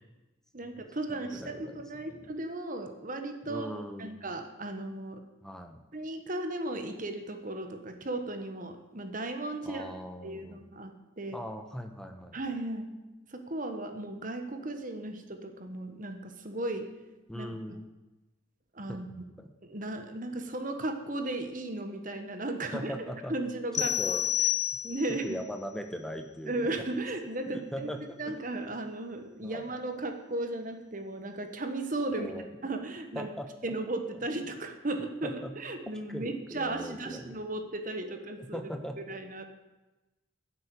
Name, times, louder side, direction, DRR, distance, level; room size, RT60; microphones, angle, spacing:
voice 1, 0.5-3.7 4.0-5.2 5.9-9.8 10.2-11.4 12.3-12.9 13.3-16.9 17.4-17.5 18.7-19.1 19.6-22.9 23.3-24.1 24.8-25.4 26.5-27.9 28.2-32.4 32.6-33.3 33.6-38.6 39.1-39.4, right 2 dB, 40° right, 7 dB, 1.2 m, -35 dB
voice 2, 1.1-2.3 3.4-4.2 5.4-5.8 9.6-10.6 11.3-12.4 17.3-17.9 18.9-19.5 22.7-23.3 23.8-24.2 25.2-26.7 27.4-28.3 29.4-29.7 32.1-32.5 33.1-33.7 35.2-35.5 36.1-37.4 38.1-39.0, equal, 5° left, 5 dB, 1.0 m, -40 dB
sound 1, 23.7-25.3, left 12 dB, 35° left, 0.7 m, -29 dB
10.5 x 8.2 x 8.3 m, 1.1 s
head